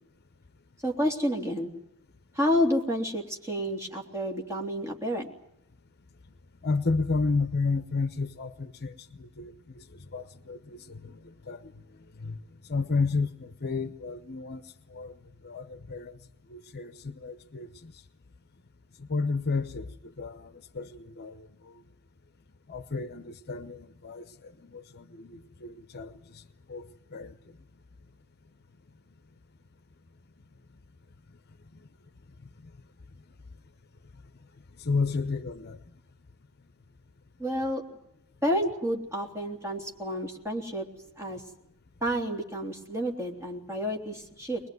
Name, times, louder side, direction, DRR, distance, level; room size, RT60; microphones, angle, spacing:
voice 1, 0.8-1.7 2.3-5.3 37.4-37.8 38.4-40.8 41.2-41.4 42.0-44.6, equal, 15° right, 3.2 m, -29 dB
voice 2, 6.6-11.7 12.2-12.4 12.7-14.6 14.9-16.2 16.5-17.9 19.0-21.5 22.7-26.4 26.7-27.3 31.7-31.8 34.8-35.8, left 4 dB, 45° left, 0.9 m, -32 dB
23.0 x 21.0 x 9.4 m
head